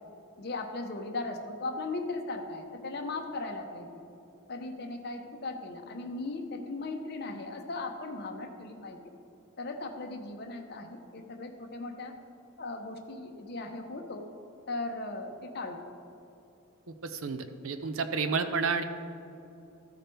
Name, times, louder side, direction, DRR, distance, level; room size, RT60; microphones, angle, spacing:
voice 1, 0.4-3.9 4.5-9.0 9.6-12.1 12.6-14.2 14.7-15.8, left 2 dB, 50° left, 4 dB, 0.8 m, -37 dB
voice 2, 17.0-18.8, right 5 dB, 75° right, 9 dB, 0.6 m, -30 dB
13.5 x 4.9 x 4.5 m, 2.8 s
head